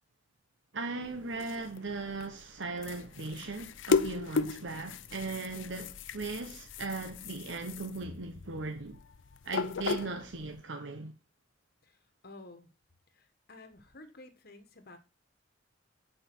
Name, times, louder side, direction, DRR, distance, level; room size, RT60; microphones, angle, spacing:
voice 1, 0.7-9.0 9.4-11.1, right 3 dB, 75° right, 1.1 m, -38 dB
sound 1, 1.0-10.6, left 4 dB, 85° left, 0.6 m, -36 dB
voice 2, 12.2-12.7 13.1-15.0, left 2 dB, 55° left, 1.6 m, -52 dB
10.0 x 5.2 x 6.2 m
head